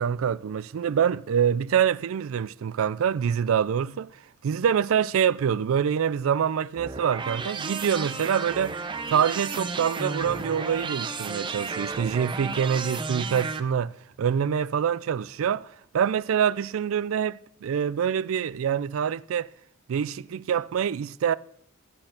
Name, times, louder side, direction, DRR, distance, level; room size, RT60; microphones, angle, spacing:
voice 1, 0.0-4.1 4.4-8.8 9.1-13.9 14.2-15.7 15.9-19.5 19.9-21.3, right 8 dB, 80° right, 0.4 m, -25 dB
sound 1, 6.8-13.6, right 4 dB, 25° right, 0.6 m, -33 dB
15.0 x 6.5 x 5.8 m
head